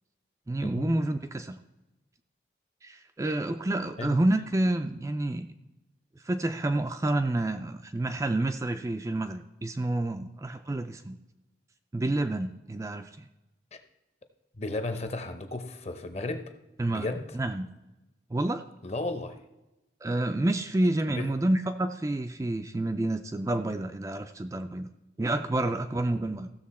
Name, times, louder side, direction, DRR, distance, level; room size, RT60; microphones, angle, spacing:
voice 1, 0.5-1.6 2.8-5.5 6.2-11.2 11.9-13.1 16.8-17.7 18.3-18.6 20.0-24.9 25.2-26.5, right 1 dB, 15° right, 7 dB, 0.3 m, -29 dB
voice 2, 14.6-16.5 16.9-17.4 18.8-19.4 21.2-21.3 25.6-25.8, left 2 dB, 35° left, 8 dB, 0.8 m, -34 dB
15.0 x 6.6 x 4.2 m, 1.0 s
head